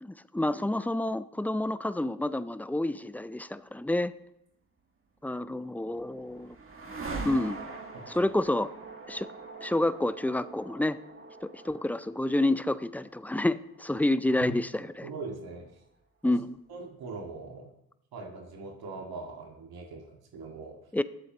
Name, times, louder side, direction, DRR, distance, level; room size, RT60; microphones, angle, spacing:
voice 1, 0.0-4.1 5.2-6.5 7.2-7.6 8.1-8.7 9.1-9.3 9.6-11.0 11.4-15.1 16.2-16.6 20.9-21.0, left 1 dB, 5° left, 14 dB, 0.5 m, -29 dB
sound 1, 5.5-15.6, right 3 dB, 35° right, 2.0 m, -44 dB
voice 2, 15.0-15.7 16.2-16.4 16.7-17.7 18.1-20.8, right 3 dB, 70° right, 1 dB, 2.0 m, -41 dB
22.0 x 7.6 x 3.0 m, 0.80 s
cardioid pair, 70°, 39 cm